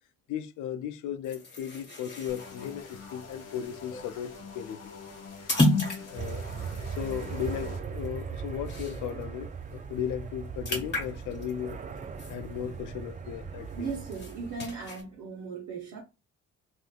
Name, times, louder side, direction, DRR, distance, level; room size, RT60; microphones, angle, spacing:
voice 1, 0.3-4.9 6.0-6.4 6.8-11.8 12.3-13.9, left 9 dB, 80° left, 0.5 m, -36 dB
sound 1, 1.2-9.2 9.6-9.8 10.1-13.0 13.4-15.0, left 1 dB, 35° left, 1.4 m, -34 dB
sound 2, 2.3-7.8, left 4 dB, 55° left, 1.0 m, -46 dB
sound 3, 6.2-14.9, right 6 dB, 25° right, 0.4 m, -39 dB
voice 2, 13.7-16.0, right 5 dB, 75° right, 1.0 m, -37 dB
3.4 x 2.7 x 2.3 m
cardioid pair, 90°, 30 cm